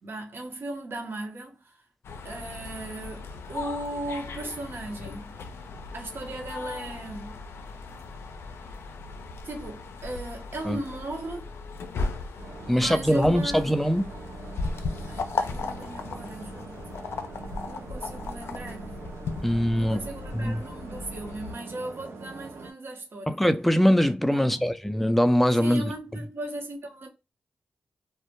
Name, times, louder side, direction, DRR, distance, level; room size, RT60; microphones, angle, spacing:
voice 1, 0.0-1.8 2.2-5.3 5.9-7.4 9.4-11.5 12.7-13.7 15.1-16.8 17.6-19.0 19.7-23.4 24.3-24.7 25.6-27.1, right 2 dB, 60° right, 0.8 m, -37 dB
sound 1, 2.0-21.5, left 4 dB, 80° left, 0.3 m, -37 dB
sound 2, 12.4-22.7, right 4 dB, 85° right, 0.4 m, -43 dB
voice 2, 12.7-14.1 19.4-20.0 20.3-20.6 23.3-25.9, equal, 5° left, 0.3 m, -22 dB
2.1 x 2.1 x 2.8 m
cardioid pair, 55°, 4 cm